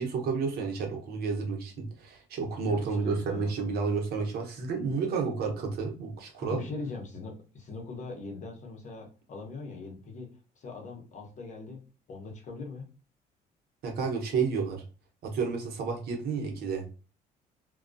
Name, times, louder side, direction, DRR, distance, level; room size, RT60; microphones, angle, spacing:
voice 1, 0.0-6.6 13.8-14.8 15.2-16.8, right 5 dB, 65° right, 1 dB, 0.8 m, -31 dB
voice 2, 2.6-3.5 6.4-11.8 12.1-12.9, left 3 dB, 45° left, 1 dB, 0.9 m, -41 dB
2.2 x 2.2 x 2.6 m, 0.35 s
cardioid pair, 110°, 17 cm